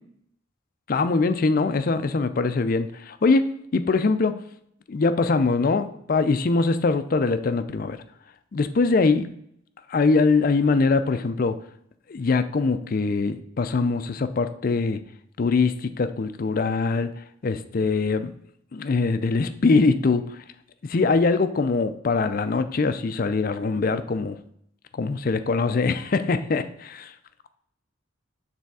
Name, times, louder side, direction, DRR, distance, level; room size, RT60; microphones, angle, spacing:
voice 1, 0.9-3.5 3.7-4.3 4.9-8.0 8.5-9.3 9.9-11.6 12.1-15.0 15.4-17.1 17.4-18.3 18.7-20.2 20.8-24.4 24.9-27.1, left 4 dB, 45° left, 10 dB, 0.4 m, -22 dB
6.8 x 3.4 x 4.7 m, 0.70 s
head